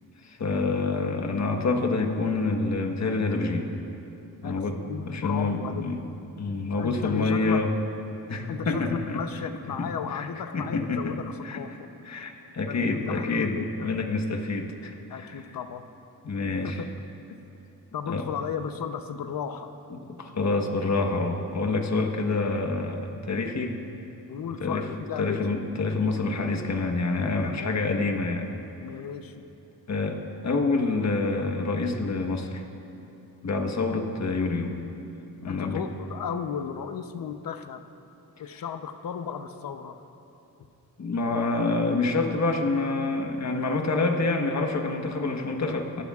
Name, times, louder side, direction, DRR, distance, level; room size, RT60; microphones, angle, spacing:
voice 1, 0.2-3.7 4.4-4.8 5.1-6.0 6.4-7.7 8.3-9.2 9.7-10.3 10.5-11.1 11.4-11.6 12.0-15.4 16.2-16.8 18.1-18.2 19.9-23.8 24.6-24.8 25.2-28.5 29.9-30.2 30.4-32.6 33.4-34.8 35.4-35.8 41.0-46.0, left 3 dB, 45° left, 3 dB, 1.3 m, -27 dB
voice 2, 4.4-5.9 6.8-7.6 8.5-11.9 12.7-13.9 15.1-15.8 16.6-16.9 17.9-19.8 24.3-25.4 27.4-27.8 28.8-29.3 35.5-37.8 38.4-40.0 46.0-46.1, left 7 dB, 65° left, 8 dB, 0.8 m, -35 dB
24.5 x 11.5 x 2.4 m, 3.0 s
cardioid pair, 95°, 37 cm